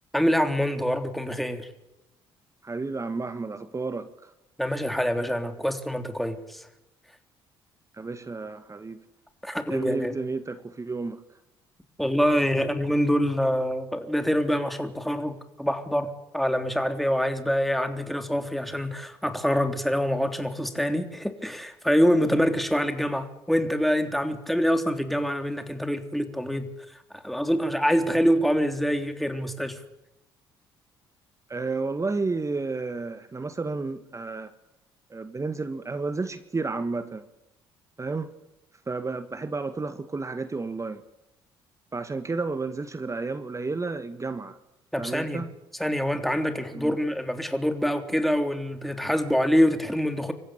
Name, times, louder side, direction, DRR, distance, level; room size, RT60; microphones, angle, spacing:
voice 1, 0.1-1.7 4.6-6.7 9.4-10.2 12.0-26.7 27.1-29.8 44.9-45.4 45.8-50.3, equal, ahead, 6 dB, 3.5 m, -25 dB
voice 2, 2.6-4.3 8.0-9.0 9.7-11.2 31.5-34.5 35.1-37.2 38.0-38.3 38.9-41.0 41.9-44.6 45.0-45.5 46.7-46.9, right 3 dB, 25° right, 11 dB, 1.7 m, -31 dB
26.0 x 15.0 x 8.7 m, 0.94 s
hypercardioid pair, 50°, 12 cm